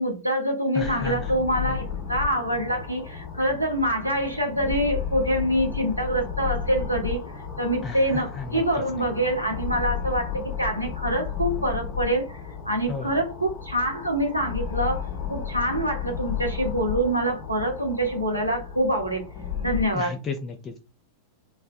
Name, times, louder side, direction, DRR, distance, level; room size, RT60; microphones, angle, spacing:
voice 1, 0.0-7.2 7.6-12.4 12.7-19.2 19.6-20.2, right 1 dB, 90° right, 0.8 m, -25 dB
voice 2, 0.7-1.3 7.8-8.0 8.3-8.6 12.9-13.2 19.9-20.8, left 4 dB, 25° left, 0.4 m, -33 dB
sound 1, 0.8-19.8, left 8 dB, 50° left, 1.0 m, -33 dB
3.2 x 2.1 x 2.5 m
figure-of-eight pair, 90°, 0 cm